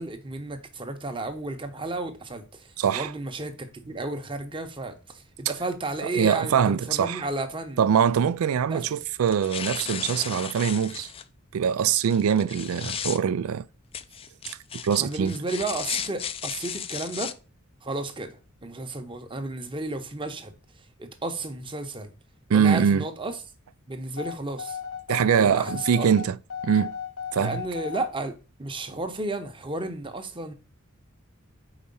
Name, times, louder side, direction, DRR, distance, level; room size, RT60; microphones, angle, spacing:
voice 1, 0.0-7.8 8.7-9.0 15.0-17.3 17.8-20.5 21.0-22.1 22.5-23.4 23.9-24.8 25.4-26.1 27.4-30.5, right 2 dB, 25° right, 0.8 m, -33 dB
voice 2, 2.8-3.1 6.0-7.2 7.8-11.1 11.5-13.6 14.5-14.6 14.8-15.4 22.5-23.0 25.1-26.4 26.6-26.9 27.3-27.6, right 7 dB, 85° right, 0.4 m, -23 dB
sound 1, 9.2-11.2 12.1-13.2 13.9-17.3, left 8 dB, 25° left, 0.4 m, -35 dB
sound 2, 24.2-28.1, left 7 dB, 85° left, 1.1 m, -35 dB
4.9 x 4.2 x 5.4 m
head